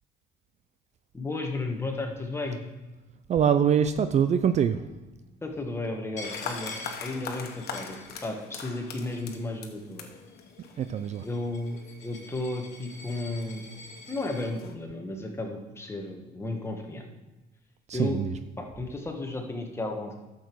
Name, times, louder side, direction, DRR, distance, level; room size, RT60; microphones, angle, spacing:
voice 1, 1.1-2.6 5.4-6.7 7.0-10.1 11.2-11.8 12.0-13.7 14.1-17.1 17.9-18.2 18.6-20.1, left 2 dB, 15° left, 2 dB, 1.6 m, -33 dB
voice 2, 3.3-4.9 10.8-11.3 17.9-18.3, right 8 dB, 40° right, 10 dB, 0.5 m, -24 dB
sound 1, 6.2-14.7, left 6 dB, 70° left, 1.4 m, -43 dB
Coin (dropping), 6.2-8.5 8.8-9.6 10.3-14.5, left 2 dB, 40° left, 2.7 m, -45 dB
11.5 x 7.2 x 4.7 m, 1.1 s
cardioid pair, 110°, 17 cm